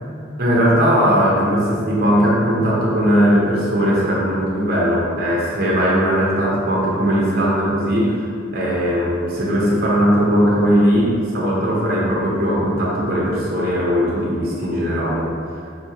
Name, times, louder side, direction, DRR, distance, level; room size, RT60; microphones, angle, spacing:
voice 1, 0.4-8.2 8.5-15.3 15.5-15.6, equal, 50° right, -4 dB, 1.0 m, -18 dB
6.4 x 2.8 x 2.9 m, 2.5 s
head